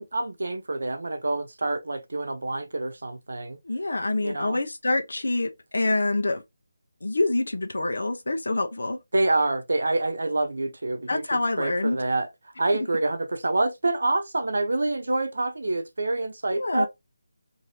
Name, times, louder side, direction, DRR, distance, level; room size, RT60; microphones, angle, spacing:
voice 1, 0.0-3.6 4.2-4.6 9.1-12.3 12.6-16.9, right 2 dB, 70° right, 0.7 m, -27 dB
voice 2, 3.6-6.4 7.0-9.0 11.1-12.0 16.5-16.9, left 2 dB, 80° left, 0.7 m, -26 dB
2.7 x 2.7 x 3.1 m
figure-of-eight pair, 180°, 0 cm